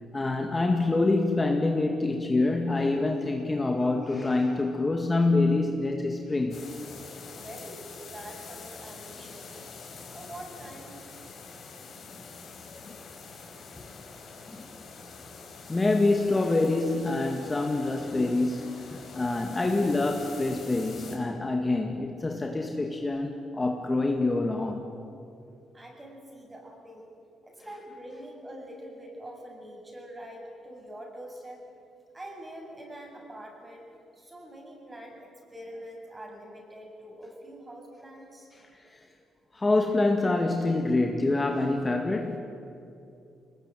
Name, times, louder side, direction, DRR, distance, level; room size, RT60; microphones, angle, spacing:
voice 1, 0.1-6.6 12.7-13.0 14.5-14.7 15.7-24.9 38.9-39.0 39.5-42.4, left 2 dB, 20° left, 3 dB, 2.0 m, -26 dB
sound 1, 6.5-21.2, left 4 dB, 55° left, 5.3 m, -45 dB
voice 2, 7.3-9.6 10.1-11.1 25.7-27.2 27.4-31.6 32.1-33.9 34.1-38.5, right 1 dB, 20° right, 1 dB, 7.2 m, -44 dB
23.0 x 20.0 x 9.2 m, 2.6 s
cardioid pair, 90°, 0 cm